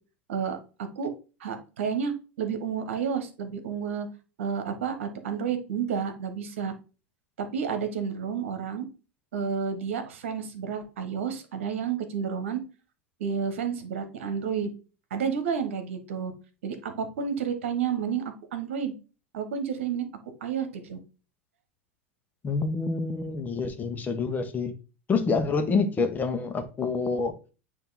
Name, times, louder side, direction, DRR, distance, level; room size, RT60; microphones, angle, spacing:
voice 1, 1.4-4.1 4.4-6.7 7.4-8.8 9.3-12.6 13.2-14.7 15.1-16.3 16.6-18.2 18.5-18.9 19.3-20.1 20.4-21.0, right 7 dB, 70° right, 1.3 m, -30 dB
voice 2, 22.4-24.7 25.1-27.3, left 4 dB, 25° left, 1.2 m, -27 dB
9.0 x 3.0 x 4.1 m
figure-of-eight pair, 85°, 7 cm